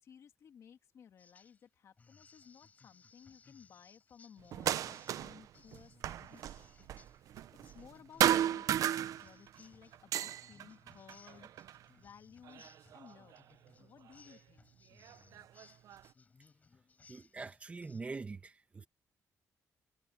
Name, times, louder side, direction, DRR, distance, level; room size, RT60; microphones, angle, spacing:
voice 1, 0.0-6.7 7.2-7.4 7.7-11.5 12.0-13.4 13.8-14.7, left 8 dB, 55° left, 2.4 m, -58 dB
sound 1, 1.2-1.6 2.0-18.0, left 4 dB, 25° left, 4.9 m, -64 dB
sound 2, 4.5-5.5 5.7-7.9 8.2-9.6 9.9-11.8 12.5-13.4 14.3-14.4 15.0-16.1, right 11 dB, 75° right, 0.7 m, -34 dB
voice 2, 17.1-18.9, right 4 dB, 20° right, 1.2 m, -44 dB
wide cardioid pair, 170°, 6 cm